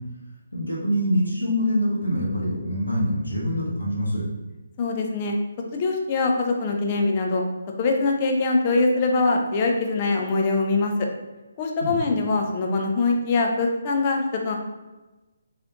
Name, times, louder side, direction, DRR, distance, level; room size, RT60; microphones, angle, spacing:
voice 1, 0.5-4.2 11.8-12.0, equal, 80° left, -4 dB, 1.1 m, -25 dB
voice 2, 4.8-5.4 5.7-7.4 7.8-11.1 11.6-14.6, left 3 dB, 30° left, 1 dB, 0.6 m, -23 dB
3.9 x 3.2 x 2.9 m, 1.1 s
figure-of-eight pair, 140°, 0 cm